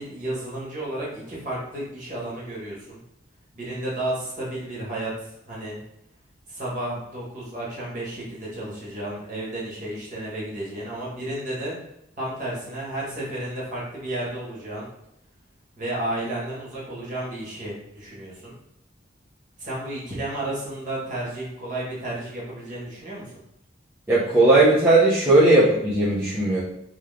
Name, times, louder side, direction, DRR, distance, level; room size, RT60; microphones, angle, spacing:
voice 1, 0.0-3.0 3.5-5.1 5.5-5.8 6.5-11.7 12.2-14.9 15.8-18.5 19.6-23.2, right 1 dB, 40° right, -6 dB, 1.5 m, -32 dB
voice 2, 24.1-26.6, right 2 dB, 10° right, -10 dB, 0.8 m, -17 dB
3.4 x 3.3 x 3.7 m, 0.80 s
head